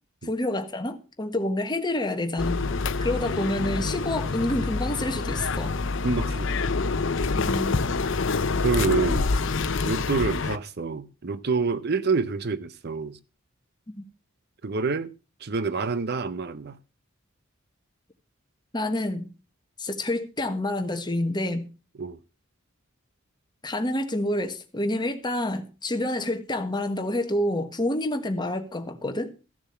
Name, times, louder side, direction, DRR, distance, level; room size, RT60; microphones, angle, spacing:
voice 1, 0.2-2.6 3.0-5.7 7.3-7.8 14.0-14.1 18.7-19.3 19.8-21.7 23.6-29.3, left 1 dB, 20° left, 1.4 m, -28 dB
sound 1, 2.4-10.6, left 4 dB, 65° left, 0.7 m, -26 dB
voice 2, 6.0-6.8 8.6-9.3 9.8-13.2 14.6-15.1 15.4-16.8 22.0-22.2, right 4 dB, 55° right, 0.7 m, -27 dB
14.5 x 7.0 x 5.7 m
head